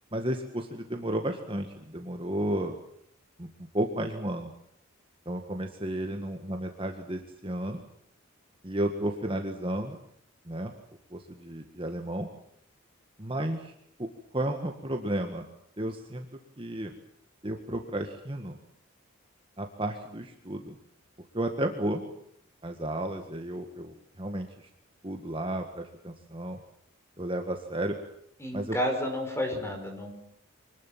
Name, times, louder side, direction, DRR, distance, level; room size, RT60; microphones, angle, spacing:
voice 1, 0.1-2.8 3.4-3.5 3.7-4.5 5.2-7.8 8.6-10.0 10.5-10.7 11.1-12.3 13.2-13.7 14.0-15.5 15.8-16.2 16.6-17.0 17.4-18.6 19.6-20.7 21.3-22.0 22.6-24.7 25.0-26.6 27.2-27.9 28.5-28.8, right 1 dB, 25° right, 4 dB, 1.8 m, -33 dB
voice 2, 28.4-30.1, left 1 dB, 10° left, 4 dB, 5.4 m, -31 dB
25.5 x 20.0 x 7.5 m, 0.70 s
head